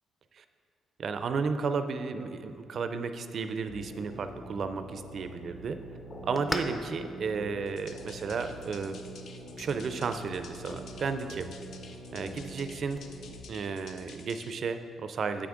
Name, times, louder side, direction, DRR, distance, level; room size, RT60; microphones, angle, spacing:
voice 1, 1.0-5.8 6.2-9.0 9.6-11.5 12.1-13.0 13.5-15.5, right 5 dB, 55° right, 9 dB, 0.4 m, -33 dB
sound 1, 3.7-13.4, right 1 dB, 55° left, 1.5 m, -45 dB
sound 2, 4.2-13.1, left 1 dB, 15° left, 0.6 m, -45 dB
sound 3, 7.7-14.5, left 5 dB, 75° left, 0.6 m, -51 dB
7.9 x 6.0 x 3.7 m, 2.4 s
cardioid pair, 90°, 0 cm